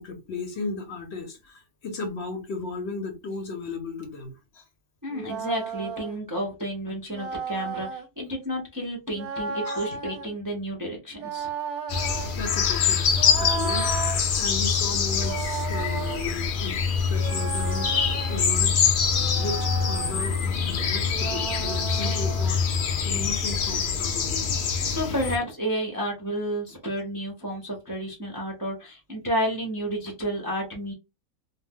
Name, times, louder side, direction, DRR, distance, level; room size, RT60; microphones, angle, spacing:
voice 1, 0.0-4.6 9.6-9.9 12.4-14.0 14.3-16.8 17.1-18.9 19.3-22.6 23.0-24.5, left 3 dB, 60° left, 0.8 m, -35 dB
voice 2, 5.0-11.5 24.8-30.9, equal, 25° right, 0.4 m, -31 dB
sound 1, 5.1-6.2 7.1-8.1 9.1-10.3 11.1-12.4 13.1-14.2 15.1-16.2 17.1-18.5 19.1-20.2 21.1-22.5, right 6 dB, 85° right, 1.1 m, -34 dB
sound 2, 11.9-25.4, left 6 dB, 85° left, 0.4 m, -25 dB
2.6 x 2.0 x 3.4 m
omnidirectional pair, 1.5 m